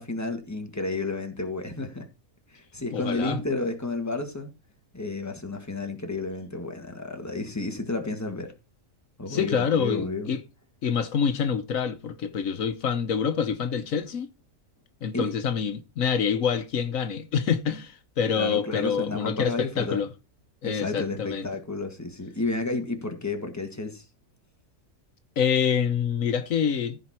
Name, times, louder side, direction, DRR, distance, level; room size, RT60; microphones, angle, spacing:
voice 1, 0.0-2.1 2.5-4.5 4.9-8.5 9.2-10.3 15.1-15.3 18.3-20.0 20.6-24.1, left 2 dB, 10° left, 1.8 m, -31 dB
voice 2, 2.9-3.4 9.3-10.4 10.8-14.3 15.0-20.1 20.6-21.5 25.4-27.0, left 7 dB, 80° left, 1.4 m, -26 dB
15.0 x 5.1 x 4.3 m
omnidirectional pair, 1.4 m